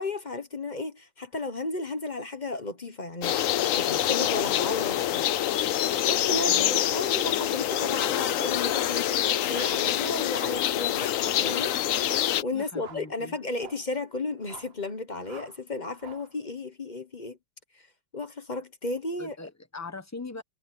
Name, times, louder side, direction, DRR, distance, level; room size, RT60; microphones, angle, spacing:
voice 1, 0.0-5.3 5.6-17.4 17.7-17.9 18.1-19.5, left 3 dB, 30° left, 1.2 m, -34 dB
sound 1, 3.2-12.4, left 12 dB, 65° left, 0.9 m, -26 dB
voice 2, 6.5-6.8 12.5-13.4 19.2-20.4, left 3 dB, 10° left, 1.0 m, -41 dB
sound 2, 7.7-8.1 8.6-8.9 9.5-9.9 10.3-10.7 11.1-11.5 12.0-12.3 12.8-13.1 13.5-13.9 14.4-14.8 15.2-15.6 16.0-16.3, right 6 dB, 40° right, 1.1 m, -47 dB
omnidirectional pair, 1.8 m